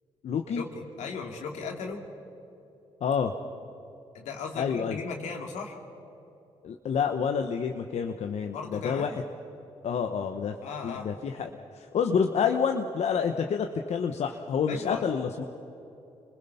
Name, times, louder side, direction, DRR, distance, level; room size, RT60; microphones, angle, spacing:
voice 1, 0.2-0.6 3.0-3.3 4.6-5.0 6.6-9.1 9.8-10.6 10.8-15.4, left 6 dB, 75° left, 5 dB, 1.0 m, -28 dB
voice 2, 1.0-2.0 4.1-5.8 8.5-9.1 10.6-11.1 14.7-15.0, left 5 dB, 90° left, 2 dB, 2.4 m, -36 dB
27.0 x 20.5 x 5.7 m, 2.9 s
supercardioid pair, 55°, 12 cm